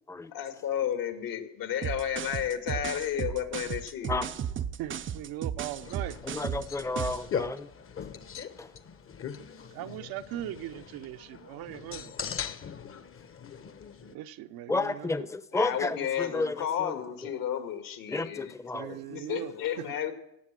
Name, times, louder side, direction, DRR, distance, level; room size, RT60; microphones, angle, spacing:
voice 1, 0.3-4.1 15.5-18.5 19.1-20.1, left 9 dB, 65° left, 2.1 m, -32 dB
sound 1, 1.8-7.3, right 8 dB, 35° right, 0.6 m, -35 dB
voice 2, 4.8-6.2 9.7-12.1 14.1-15.1 18.7-19.9, right 13 dB, 70° right, 0.9 m, -39 dB
sound 2, 5.8-14.1, left 7 dB, 35° left, 1.1 m, -40 dB
voice 3, 6.2-7.7 8.6-8.7 14.7-17.3 18.1-19.0, left 3 dB, 10° left, 0.8 m, -32 dB
17.0 x 7.4 x 7.5 m
supercardioid pair, 85°, 37 cm